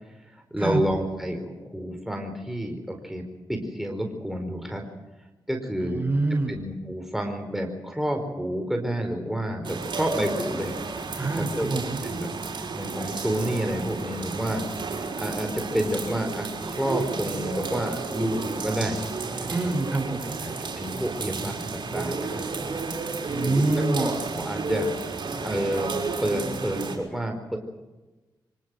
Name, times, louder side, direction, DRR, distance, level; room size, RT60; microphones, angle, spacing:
voice 1, 0.3-3.2 3.5-4.8 5.5-6.0 6.5-10.8 11.3-11.7 12.0-12.3 12.5-14.6 15.2-19.5 20.2-22.5 23.4-23.6 23.9-24.9 25.4-25.9 26.2-27.6, equal, 5° right, 3 dB, 4.6 m, -29 dB
voice 2, 5.8-6.6 11.2-12.0 19.5-20.4 23.2-24.2, right 2 dB, 20° right, 4 dB, 7.0 m, -26 dB
sound 1, 9.6-27.0, right 4 dB, 65° right, 6.0 m, -32 dB
25.5 x 19.0 x 7.8 m, 1.1 s
cardioid pair, 55°, 9 cm